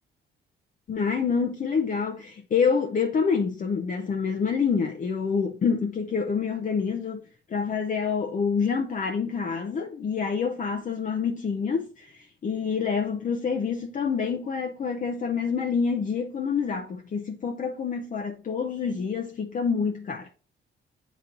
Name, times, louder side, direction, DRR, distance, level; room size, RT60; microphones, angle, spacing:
voice 1, 0.9-7.2 7.5-20.3, left 5 dB, 40° left, 0.7 m, -27 dB
8.2 x 3.0 x 3.8 m
cardioid pair, 90°, 20 cm